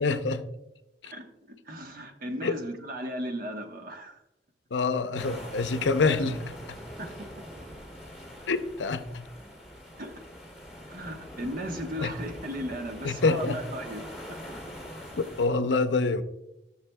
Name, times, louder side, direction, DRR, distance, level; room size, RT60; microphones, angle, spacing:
voice 1, 0.0-0.4 1.0-1.1 2.4-2.6 4.7-6.8 8.5-9.2 12.0-12.1 13.0-13.6 15.2-16.2, left 3 dB, 75° left, 11 dB, 0.6 m, -26 dB
voice 2, 1.7-4.2 7.0-7.3 10.0-10.1 10.9-14.1, equal, 50° right, 4 dB, 1.1 m, -36 dB
sound 1, 5.2-15.5, equal, 5° right, 2.1 m, -43 dB
14.0 x 6.8 x 2.2 m, 0.91 s
head